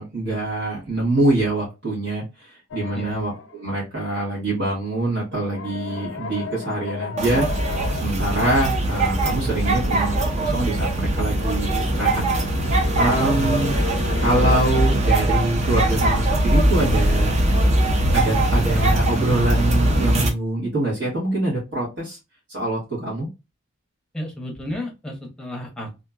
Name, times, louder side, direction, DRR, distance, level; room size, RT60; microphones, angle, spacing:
voice 1, 0.0-12.2 12.9-13.7 14.2-17.3 18.1-22.2 22.5-23.3, right 1 dB, 60° right, -7 dB, 1.4 m, -24 dB
sound 1, 2.7-3.6 5.4-8.1 8.9-10.3 10.9-15.0 16.4-20.0, left 3 dB, 80° left, 0.6 m, -34 dB
sound 2, 7.2-20.3, right 1 dB, 35° right, 0.5 m, -21 dB
voice 2, 12.7-13.1 24.1-26.0, left 1 dB, 5° left, 0 dB, 0.8 m, -33 dB
2.8 x 2.6 x 2.3 m, 0.25 s
head